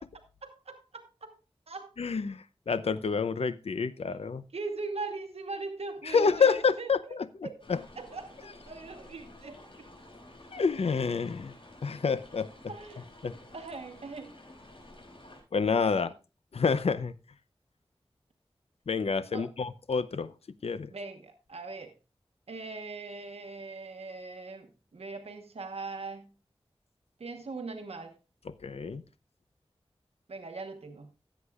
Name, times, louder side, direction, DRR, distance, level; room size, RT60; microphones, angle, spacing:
voice 1, 0.4-1.3 1.7-1.9 4.5-6.9 7.4-7.6 8.0-9.6 12.7-13.0 13.5-14.3 15.9-16.1 19.3-19.5 20.9-21.9 22.5-26.3 27.2-28.1 30.3-31.1, right 3 dB, 90° right, 1.1 m, -40 dB
voice 2, 2.0-4.4 6.0-7.8 10.5-11.5 11.8-12.5 13.2-13.4 15.5-16.1 16.5-17.1 18.9-20.3 20.6-20.9 28.6-29.0, left 5 dB, 90° left, 0.6 m, -28 dB
sound 1, 7.6-15.4, left 1 dB, 60° left, 5.1 m, -52 dB
16.5 x 8.2 x 2.4 m
wide cardioid pair, 55°, 10 cm